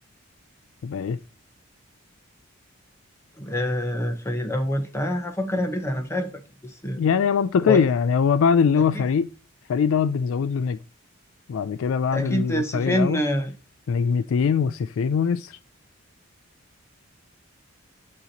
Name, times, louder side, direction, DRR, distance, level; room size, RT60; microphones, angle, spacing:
voice 1, 0.8-1.2 7.0-9.3 9.7-10.8 11.5-13.2 13.9-15.6, left 6 dB, 70° left, 0.3 m, -22 dB
voice 2, 3.4-7.0 7.6-7.8 8.9-9.0 12.1-13.5, equal, 15° left, 0.9 m, -26 dB
8.1 x 3.0 x 4.0 m
head